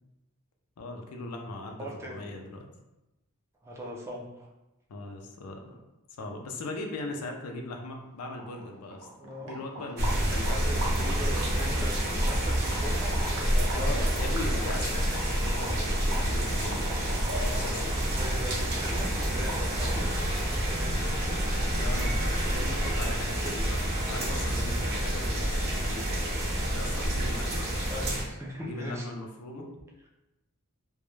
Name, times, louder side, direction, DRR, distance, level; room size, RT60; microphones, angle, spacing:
voice 1, 0.8-2.7 4.9-5.8 6.2-9.1 9.4-10.8 13.7-16.9 17.4-18.0 21.7-26.2 26.7-27.7 28.6-29.7, left 2 dB, 75° left, 2 dB, 0.4 m, -39 dB
voice 2, 1.8-2.3 3.6-4.5 9.2-9.5 10.5-14.4 17.9-21.1 22.8-23.1 23.4-23.5 27.9-29.1 29.6-29.7, equal, 10° right, -2 dB, 0.3 m, -40 dB
sound 1, 8.1-8.2 8.3-20.1, right 1 dB, 90° right, 0.6 m, -41 dB
sound 2, 10.0-28.2, right 1 dB, 45° right, 0.7 m, -28 dB
2.2 x 2.0 x 3.0 m, 0.97 s
head